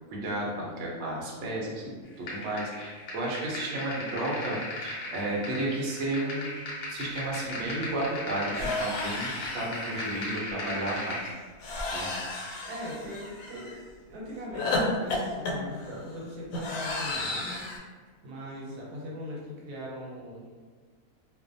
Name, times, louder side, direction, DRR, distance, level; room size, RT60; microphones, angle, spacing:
voice 1, 0.1-6.6 6.9-11.3 11.9-12.1, right 1 dB, 60° right, -4 dB, 0.8 m, -33 dB
sound 1, 2.3-11.3, left 1 dB, 60° left, 0.8 m, -37 dB
sound 2, 7.1-7.2 7.5-7.7 8.5-10.2 11.6-13.8 14.5-17.8, left 2 dB, 80° left, 1.1 m, -33 dB
voice 2, 12.6-13.8 14.1-20.4, equal, 80° right, -4 dB, 1.2 m, -40 dB
2.5 x 2.1 x 2.5 m, 1.5 s
omnidirectional pair, 1.6 m